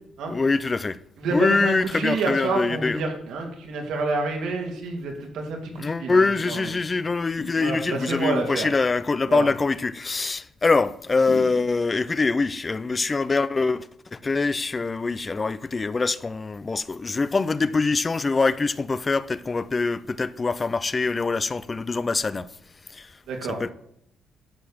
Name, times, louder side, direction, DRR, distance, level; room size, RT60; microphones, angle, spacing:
voice 1, 0.3-1.0 1.3-3.0 5.8-22.5 22.9-23.1 23.6-23.7, left 3 dB, 30° left, 0.5 m, -24 dB
voice 2, 1.2-6.7 7.6-8.7 9.3-9.5 23.3-23.6, right 3 dB, 85° right, 2.6 m, -28 dB
sound 1, 7.4-8.2 11.3-12.2, left 5 dB, 70° left, 2.1 m, -40 dB
11.5 x 4.7 x 7.1 m
cardioid pair, 90°, 0 cm